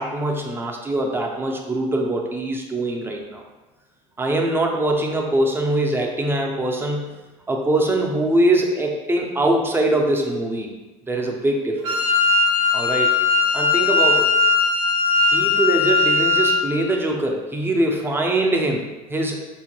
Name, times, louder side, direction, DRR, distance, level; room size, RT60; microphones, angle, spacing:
voice 1, 0.0-3.4 4.2-7.1 7.5-10.7 11.1-12.1 12.7-13.1 13.5-14.3 15.2-19.4, right 1 dB, 15° right, 1 dB, 0.5 m, -22 dB
Wind instrument woodwind instrument, 11.8-16.7, left 4 dB, 80° right, 0.5 m, -19 dB
3.7 x 2.1 x 2.9 m, 1.1 s
supercardioid pair, 95°, 17 cm